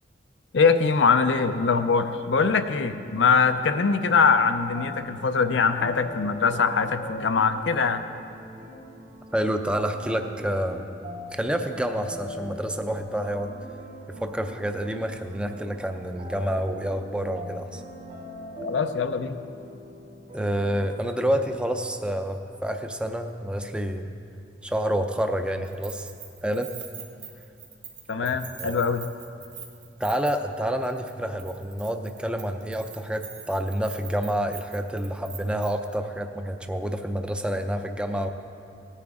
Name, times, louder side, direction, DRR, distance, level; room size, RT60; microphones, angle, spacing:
voice 1, 0.5-8.1 18.6-19.4 28.1-29.0, left 5 dB, 85° left, 8 dB, 0.5 m, -22 dB
sound 1, 1.5-21.0, left 1 dB, 45° right, 1.7 m, -42 dB
voice 2, 9.3-10.8 11.3-13.5 14.2-17.8 20.3-24.1 24.6-26.1 26.4-26.7 28.6-28.8 30.0-38.3, equal, 5° right, 6 dB, 0.5 m, -28 dB
Keys jangling, 25.6-30.6 30.8-31.1 31.4-35.9, right 8 dB, 85° right, 1.9 m, -43 dB
17.5 x 9.9 x 3.6 m, 2.5 s
head